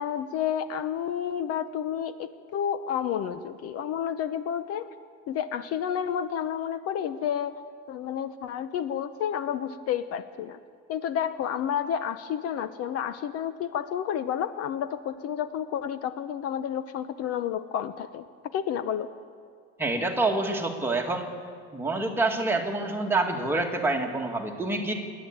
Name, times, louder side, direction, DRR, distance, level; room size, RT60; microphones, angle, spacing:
voice 1, 0.0-4.9 5.3-7.6 7.9-10.6 10.9-18.2 18.5-19.1, left 9 dB, 55° left, 12 dB, 0.8 m, -30 dB
voice 2, 19.8-21.3 21.7-24.9, right 2 dB, 10° right, 1 dB, 1.9 m, -27 dB
27.5 x 11.0 x 8.8 m, 2.3 s
cardioid pair, 165°, 29 cm